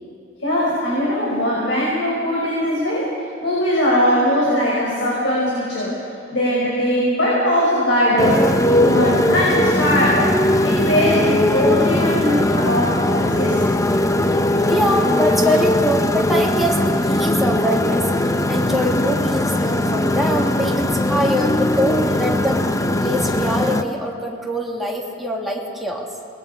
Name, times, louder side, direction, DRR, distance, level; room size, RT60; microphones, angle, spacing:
voice 1, 0.4-3.1 3.4-6.0 6.3-10.3 10.6-13.8, equal, 70° left, -5 dB, 5.9 m, -20 dB
Motorcycle, 8.2-23.8, left 1 dB, 15° left, 0.8 m, -19 dB
voice 2, 14.7-26.1, equal, ahead, -3 dB, 2.8 m, -23 dB
28.0 x 21.5 x 5.5 m, 2.6 s
head